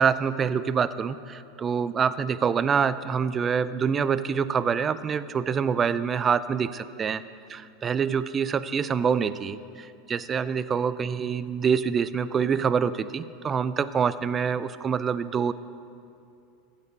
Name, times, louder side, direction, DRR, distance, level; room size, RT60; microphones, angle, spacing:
voice 1, 0.0-7.2 7.5-15.5, right 6 dB, 30° right, 15 dB, 0.4 m, -26 dB
15.5 x 5.4 x 5.3 m, 2.5 s
hypercardioid pair, 90°, 0 cm